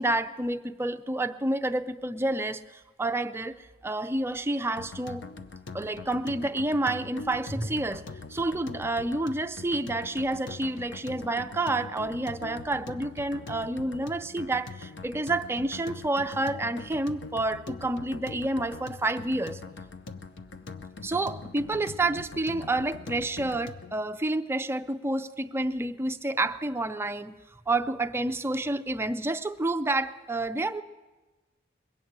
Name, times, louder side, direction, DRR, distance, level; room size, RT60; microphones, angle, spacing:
voice 1, 0.0-3.6 3.8-5.2 5.7-8.0 8.3-19.6 21.0-27.4 27.7-30.8, right 2 dB, 10° right, 9 dB, 0.4 m, -29 dB
sound 1, 4.8-24.0, left 4 dB, 65° left, 0.7 m, -42 dB
21.5 x 7.8 x 8.7 m, 1.2 s
head